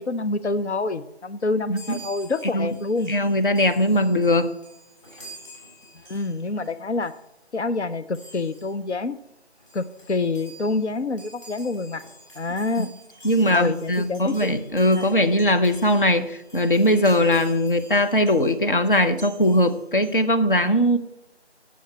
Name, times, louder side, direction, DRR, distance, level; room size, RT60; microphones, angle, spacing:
voice 1, 0.0-3.1 6.1-7.1 7.5-9.2 9.7-12.0 12.4-12.9 13.5-14.5, left 3 dB, 85° left, 12 dB, 0.7 m, -27 dB
Chime, 1.7-6.7 7.0-7.2 8.1-8.7 9.3-9.4 9.6-18.6 18.9-20.2, right 2 dB, 30° left, 3.7 m, -47 dB
voice 2, 3.1-4.5 13.2-21.0, left 1 dB, 50° left, 8 dB, 0.9 m, -20 dB
7.5 x 7.2 x 6.9 m, 0.88 s
figure-of-eight pair, 170°, 33 cm